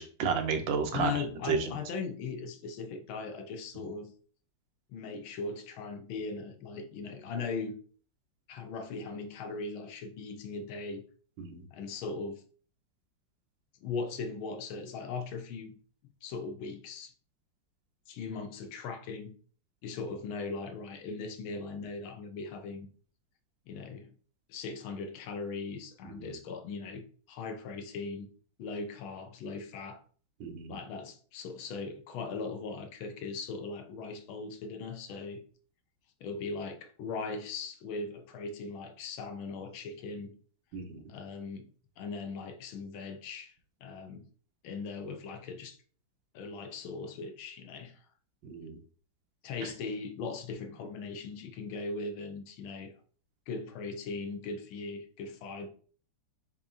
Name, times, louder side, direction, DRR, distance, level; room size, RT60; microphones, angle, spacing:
voice 1, 0.0-1.1 1.5-1.8 11.4-11.6 26.2-26.3 30.4-30.8 40.7-41.0 48.4-48.8, right 5 dB, 75° right, 1.4 m, -32 dB
voice 2, 0.9-4.1 4.9-7.8 8.5-11.0 11.7-12.4 13.8-15.8 16.2-17.1 18.1-19.3 19.8-22.9 23.7-24.1 24.5-28.3 28.6-30.0 30.7-35.4 36.2-40.3 41.1-41.7 42.0-43.5 43.8-44.3 44.6-45.8 46.3-48.0 49.4-52.9 53.5-55.7, left 4 dB, 85° left, 1.6 m, -39 dB
7.0 x 2.8 x 2.6 m
omnidirectional pair, 2.2 m